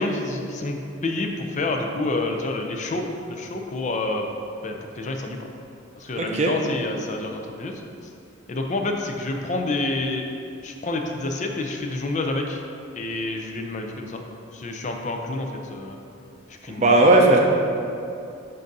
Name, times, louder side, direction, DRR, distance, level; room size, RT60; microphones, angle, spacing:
voice 1, 0.0-4.3 4.6-5.5 5.9-7.8 8.5-10.3 10.6-12.6 12.9-14.2 14.5-16.0 16.6-17.3, left 2 dB, 35° left, 3 dB, 0.4 m, -28 dB
voice 2, 6.2-6.5 16.7-17.4, right 2 dB, 35° right, 0 dB, 0.5 m, -17 dB
7.6 x 2.6 x 5.3 m, 2.6 s
head